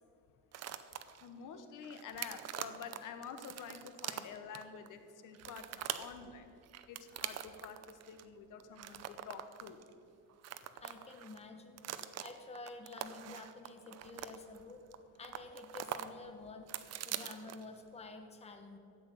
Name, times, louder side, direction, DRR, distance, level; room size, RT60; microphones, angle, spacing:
sound 1, 0.5-1.3 1.8-4.9 5.3-6.2 6.6-8.2 8.6-9.9 10.3-11.4 11.8-14.9 15.2-16.1 16.4-17.8, right 10 dB, 55° right, 0.6 m, -43 dB
voice 1, 1.2-6.5 6.9-9.8, left 6 dB, 70° left, 8 dB, 1.1 m, -49 dB
voice 2, 10.8-11.8 12.2-14.8 15.2-16.7 17.0-18.8, left 3 dB, 20° left, 4 dB, 1.0 m, -50 dB
12.0 x 8.8 x 6.9 m, 2.5 s
cardioid pair, 160°, 32 cm